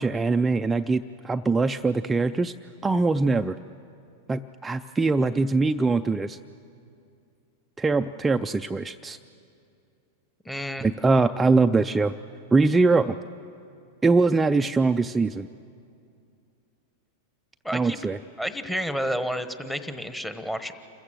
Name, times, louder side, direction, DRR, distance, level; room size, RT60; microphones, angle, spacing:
voice 1, 0.0-2.5 2.8-3.6 4.3-6.4 7.8-9.2 10.8-12.1 12.5-13.1 14.0-15.5 17.7-18.2, right 3 dB, 10° right, 7 dB, 0.4 m, -22 dB
voice 2, 10.4-10.9 17.6-18.0 18.4-20.7, equal, 5° left, 10 dB, 1.2 m, -30 dB
27.5 x 15.0 x 7.6 m, 2.5 s
hypercardioid pair, 115°, 0 cm